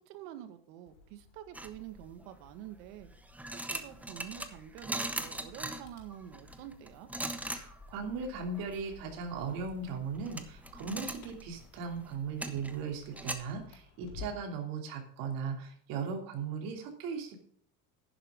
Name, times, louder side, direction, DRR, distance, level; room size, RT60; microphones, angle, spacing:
voice 1, 0.0-3.1 3.5-7.1, right 11 dB, 80° right, 9 dB, 1.9 m, -47 dB
sound 1, 0.9-14.6, left 6 dB, 80° left, 4.6 m, -56 dB
sound 2, 1.5-2.3 3.0-13.3, right 1 dB, 5° right, 0.7 m, -41 dB
voice 2, 7.5-17.4, right 5 dB, 55° right, 3 dB, 3.0 m, -38 dB
11.0 x 10.5 x 3.8 m, 0.62 s
cardioid pair, 160°, 41 cm